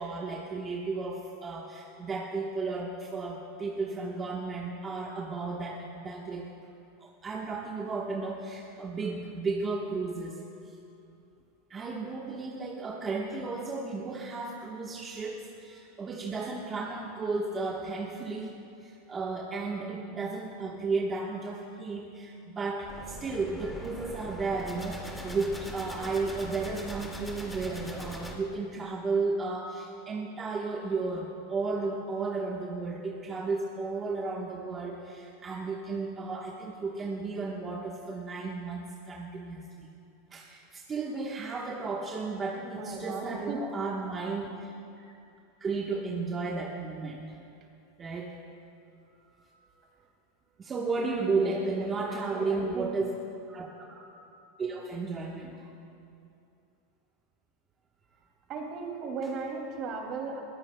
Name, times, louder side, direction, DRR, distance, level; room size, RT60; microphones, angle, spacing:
voice 1, 0.0-6.5 7.0-10.8 11.7-18.5 18.8-39.9 40.3-44.7 45.6-47.4 48.0-48.4 48.9-49.4 50.6-53.1 53.5-54.0 54.6-55.6, right 3 dB, 25° right, -2 dB, 1.1 m, -34 dB
sound 1, 22.9-28.4, equal, 5° left, 2.0 m, -41 dB
voice 2, 42.6-43.6 51.2-52.9 58.5-60.4, right 4 dB, 45° right, 2 dB, 2.4 m, -36 dB
21.5 x 15.5 x 2.2 m, 2.7 s
supercardioid pair, 125°, 0 cm